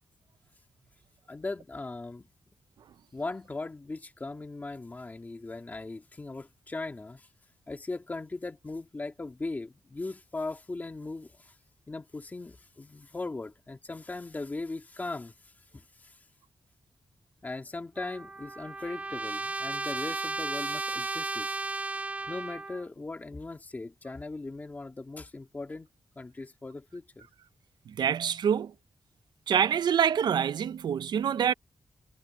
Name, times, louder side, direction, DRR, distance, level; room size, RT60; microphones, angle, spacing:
voice 1, 1.3-2.2 3.1-7.3 7.7-11.5 11.9-15.3 15.7-16.2 17.4-21.9 22.3-25.9 26.2-27.3, left 3 dB, 20° left, 2.3 m, -39 dB
Trumpet, 18.0-22.8, right 3 dB, 20° right, 0.6 m, -34 dB
voice 2, 27.9-28.7 29.5-31.5, right 8 dB, 75° right, 0.7 m, -26 dB
wide cardioid pair, 140°, 7 cm